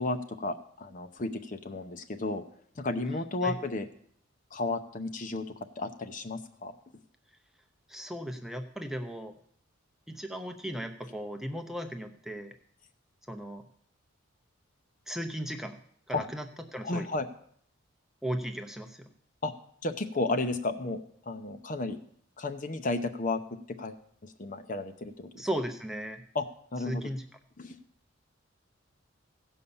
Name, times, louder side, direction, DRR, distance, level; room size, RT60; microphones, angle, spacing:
voice 1, 0.0-2.4 2.8-3.9 4.5-6.7 16.1-16.2 16.8-17.3 19.4-19.5 19.8-22.0 22.4-25.4 26.3-26.5 26.7-27.1 27.6-27.7, left 2 dB, 40° left, 8 dB, 0.7 m, -33 dB
voice 2, 7.9-9.3 10.1-12.5 13.3-13.6 15.1-15.8 16.1-16.5 16.7-17.1 18.2-19.1 25.4-26.2 26.9-27.2, equal, ahead, 5 dB, 0.7 m, -36 dB
16.0 x 5.5 x 7.0 m, 0.64 s
head